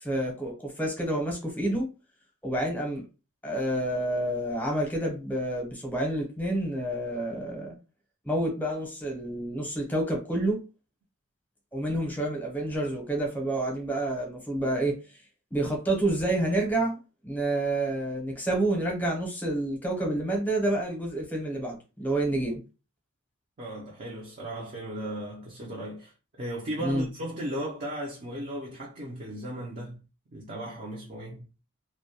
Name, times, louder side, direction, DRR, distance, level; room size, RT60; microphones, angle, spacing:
voice 1, 0.0-1.9 2.4-3.0 3.4-7.7 8.3-10.6 11.7-14.9 15.5-22.6 26.8-27.1, right 1 dB, 10° left, 0.7 m, -29 dB
voice 2, 23.6-30.0 30.3-31.5, right 1 dB, 35° right, 0.4 m, -36 dB
2.2 x 2.1 x 2.7 m
head